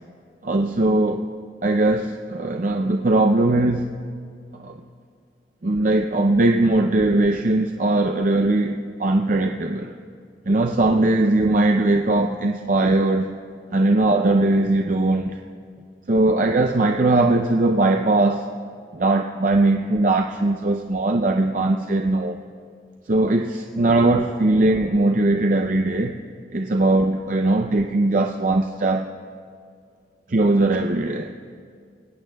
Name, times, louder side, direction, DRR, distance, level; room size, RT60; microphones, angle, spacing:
voice 1, 0.4-1.2 1.6-4.0 4.6-4.8 5.6-9.9 10.5-13.3 13.7-15.4 16.1-18.5 18.9-22.4 23.1-26.2 26.5-29.1 30.3-31.3, right 2 dB, 45° right, 4 dB, 0.5 m, -20 dB
25.0 x 18.0 x 2.3 m, 2.2 s
head